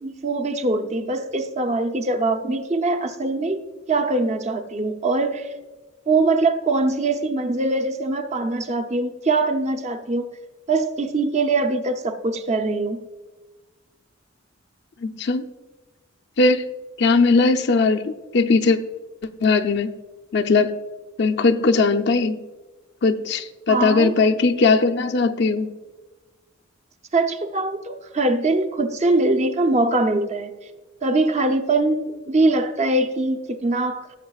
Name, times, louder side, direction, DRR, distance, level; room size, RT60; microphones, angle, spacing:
voice 1, 0.0-5.5 6.1-10.3 10.7-13.0 23.7-24.2 27.1-30.5 31.0-34.2, right 2 dB, 35° right, 7 dB, 0.6 m, -22 dB
voice 2, 15.0-15.5 16.4-16.7 17.0-18.8 19.4-19.9 20.3-20.7 21.2-22.4 23.0-25.7, left 3 dB, 55° left, 5 dB, 0.6 m, -19 dB
16.0 x 7.6 x 2.4 m, 1.3 s
head